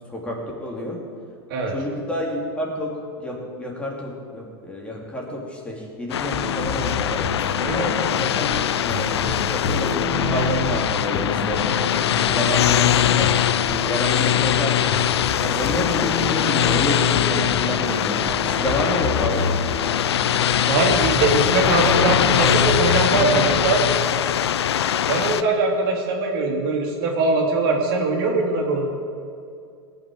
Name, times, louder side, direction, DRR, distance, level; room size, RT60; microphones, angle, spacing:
voice 1, 0.1-1.0 1.7-7.2 7.7-8.6 8.8-11.7 12.1-13.3 13.7-14.8 15.4-19.5, equal, 10° left, -2 dB, 2.8 m, -29 dB
sound 1, 6.1-25.4, left 10 dB, 80° left, 0.5 m, -22 dB
sound 2, 6.3-23.7, left 4 dB, 40° left, 1.3 m, -28 dB
voice 2, 7.6-8.1 20.7-23.8 25.1-28.9, right 3 dB, 55° right, 1 dB, 2.7 m, -22 dB
18.0 x 6.0 x 8.4 m, 2.4 s
hypercardioid pair, 110°, 14 cm